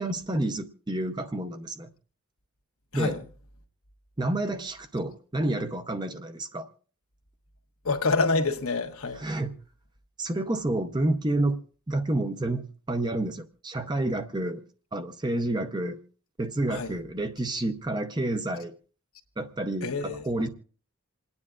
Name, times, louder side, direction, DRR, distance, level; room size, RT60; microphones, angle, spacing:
voice 1, 0.0-1.9 2.9-3.2 4.2-6.7 9.2-9.5 10.2-11.6 11.9-14.6 14.9-16.0 16.4-18.8 19.4-20.5, right 2 dB, 20° right, 0.6 m, -29 dB
voice 2, 2.9-3.2 7.8-9.2 16.7-16.9 19.8-20.2, left 3 dB, 80° left, 1.4 m, -27 dB
28.0 x 9.7 x 2.4 m
head